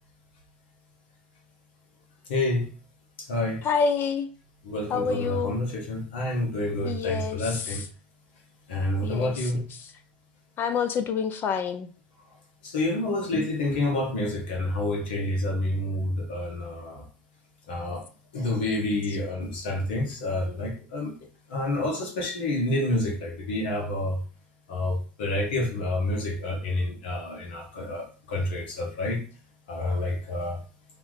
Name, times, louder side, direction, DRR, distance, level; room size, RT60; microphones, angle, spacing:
voice 1, 2.3-2.7 3.2-3.6 4.6-7.8 8.7-9.7 12.6-17.0 17.7-18.0 18.3-21.1 21.5-24.2 24.7-29.2 29.7-30.6, left 1 dB, 80° left, 1.5 m, -28 dB
voice 2, 3.6-4.3 4.9-5.5 6.8-7.8 9.0-9.5 10.6-11.9, left 6 dB, 40° left, 0.5 m, -27 dB
3.1 x 3.0 x 4.0 m
hypercardioid pair, 95°, 5 cm